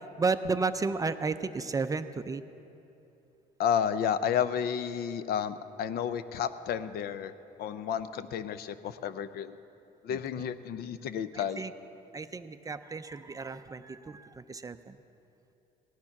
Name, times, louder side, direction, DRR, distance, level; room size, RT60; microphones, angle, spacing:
voice 1, 0.2-2.4 10.1-10.2 11.3-11.7 12.1-15.0, right 4 dB, 20° right, 10 dB, 0.4 m, -33 dB
voice 2, 3.6-7.3 7.6-9.6 10.0-11.6, left 8 dB, 70° left, 13 dB, 0.6 m, -31 dB
16.5 x 9.7 x 5.8 m, 2.8 s
cardioid pair, 110°, 17 cm